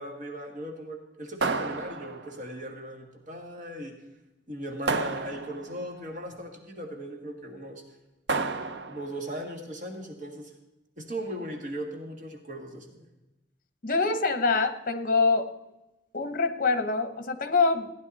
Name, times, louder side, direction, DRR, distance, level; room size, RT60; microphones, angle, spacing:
voice 1, 0.0-3.9 4.5-7.8 8.9-10.5 11.0-13.1, right 1 dB, 45° right, 3 dB, 1.6 m, -38 dB
sound 1, 1.4-2.5 4.9-5.8 8.3-9.2, right 3 dB, 65° right, 0.7 m, -31 dB
voice 2, 13.8-15.5 16.1-17.9, left 4 dB, 50° left, 10 dB, 1.0 m, -25 dB
15.5 x 10.5 x 4.1 m, 0.97 s
head